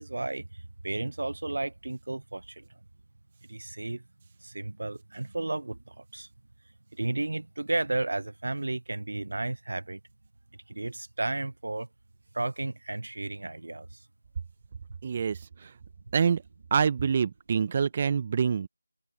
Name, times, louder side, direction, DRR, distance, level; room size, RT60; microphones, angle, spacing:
voice 1, 0.0-2.7 3.5-4.0 4.4-6.3 6.9-10.0 10.7-11.9 12.3-14.0, right 2 dB, 60° right, 1.1 m, -33 dB
voice 2, 15.0-15.7 16.1-16.4 16.7-18.7, right 6 dB, 25° right, 1.1 m, -26 dB
figure-of-eight pair, 165°, 0 cm